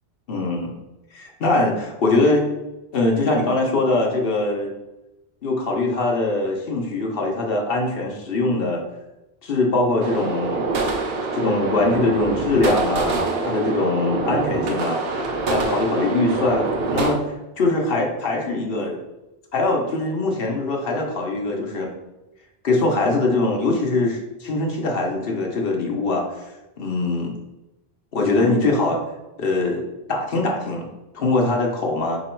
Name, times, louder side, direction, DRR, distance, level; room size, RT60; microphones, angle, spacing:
voice 1, 0.3-0.7 1.1-2.4 2.9-4.7 5.4-8.8 9.4-10.9 11.3-19.0 19.5-21.9 22.6-26.5 26.8-27.3 28.1-29.0 29.4-29.8 30.1-30.8 31.1-32.2, left 2 dB, 65° left, 0 dB, 1.1 m, -22 dB
sound 1, 10.0-17.1, right 3 dB, 70° right, 0.9 m, -25 dB
4.0 x 3.0 x 4.4 m, 0.96 s
omnidirectional pair, 1.1 m